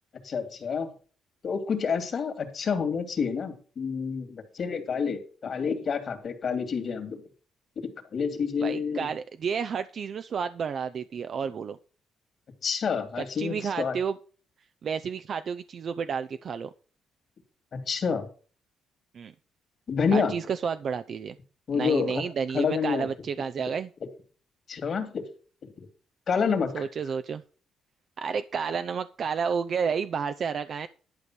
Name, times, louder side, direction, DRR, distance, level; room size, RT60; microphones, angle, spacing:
voice 1, 0.2-0.9 1.4-7.2 7.8-9.1 12.6-14.0 17.7-18.3 19.9-20.4 21.7-22.2 22.5-23.1 24.7-25.2 25.6-25.9 26.3-26.9, left 6 dB, 50° left, 7 dB, 2.4 m, -28 dB
voice 2, 8.6-11.8 13.4-14.2 14.8-16.7 19.1-19.3 20.1-21.4 21.7-23.9 26.7-27.4 28.2-30.9, right 6 dB, 55° right, 10 dB, 0.6 m, -31 dB
11.5 x 5.2 x 6.2 m, 0.41 s
cardioid pair, 90°, 0 cm